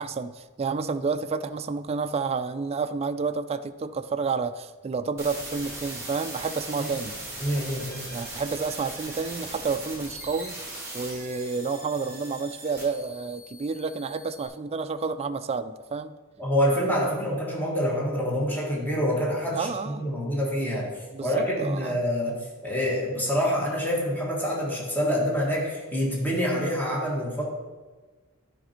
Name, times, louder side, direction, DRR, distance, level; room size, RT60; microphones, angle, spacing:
voice 1, 0.0-7.2 8.1-10.6 10.9-16.2 19.5-20.0 21.1-22.0, right 4 dB, 30° right, 10 dB, 0.3 m, -30 dB
sound 1, 5.2-14.5, right 2 dB, 15° right, 2.3 m, -39 dB
voice 2, 7.4-8.1 16.4-20.9 21.2-27.4, equal, 10° left, -3 dB, 1.7 m, -26 dB
11.0 x 5.2 x 4.4 m, 1.3 s
head